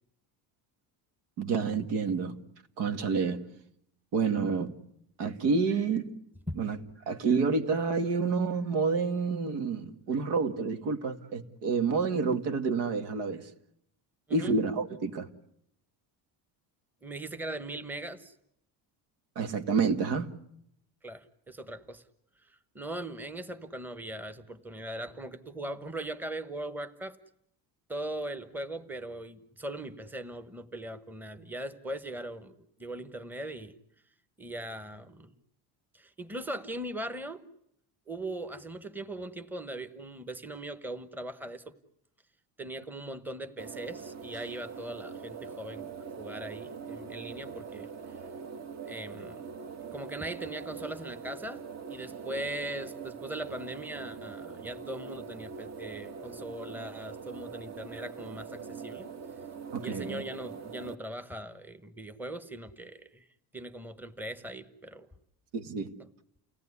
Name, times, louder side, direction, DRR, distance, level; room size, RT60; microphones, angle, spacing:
voice 1, 1.4-2.3 2.8-3.4 4.1-4.7 5.2-6.1 6.6-6.8 7.1-13.5 14.3-15.3 19.4-20.3 59.7-60.2 65.5-65.9, right 4 dB, 80° right, 2.2 m, -28 dB
voice 2, 17.0-18.3 21.0-22.0 22.5-27.2 27.9-33.7 34.4-35.3 35.9-37.4 38.1-41.7 42.6-47.9 48.9-49.4 49.9-51.6 51.9-59.1 59.8-63.3 63.5-65.1, right 1 dB, 5° right, 1.1 m, -40 dB
sound 1, 43.6-60.9, right 5 dB, 40° right, 1.5 m, -43 dB
29.5 x 17.5 x 9.8 m
cardioid pair, 135°, 41 cm